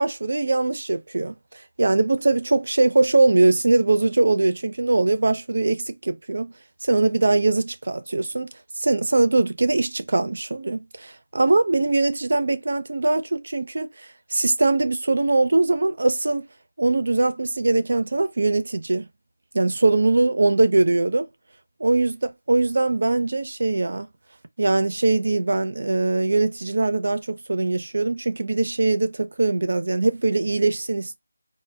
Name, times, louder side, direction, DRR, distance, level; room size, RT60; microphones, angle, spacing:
voice 1, 0.0-1.4 1.8-6.5 6.8-8.5 8.8-13.9 14.3-16.5 16.8-19.1 19.5-21.3 21.8-24.1 24.6-31.1, right 2 dB, 60° right, 0.5 m, -21 dB
2.1 x 2.0 x 3.4 m
figure-of-eight pair, 165°, 0 cm